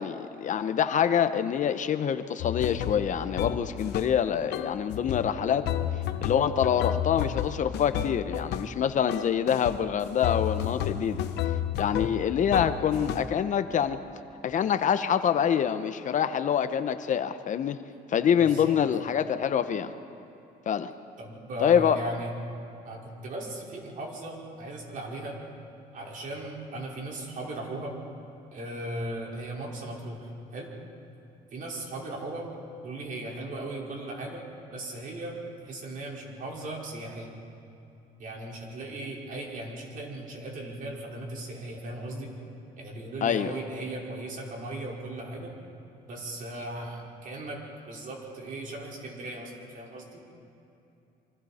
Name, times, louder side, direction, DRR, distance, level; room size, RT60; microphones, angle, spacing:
voice 1, 0.0-5.7 6.2-11.2 11.8-14.0 14.4-17.8 18.1-19.9 20.7-20.9 21.6-22.0 43.2-43.5, left 8 dB, 50° left, 11 dB, 0.9 m, -26 dB
sound 1, 2.4-4.2 4.5-8.8 9.1-9.8 10.2-13.4, left 10 dB, 80° left, 1.0 m, -32 dB
voice 2, 18.4-18.7 21.2-22.3 22.8-25.4 25.9-28.0 28.5-30.7 31.5-32.5 32.8-34.4 34.7-37.4 38.2-42.3 42.8-45.5 46.1-50.2, right 1 dB, 55° right, -2 dB, 4.9 m, -37 dB
27.0 x 25.0 x 4.3 m, 2.8 s
cardioid pair, 110°, 17 cm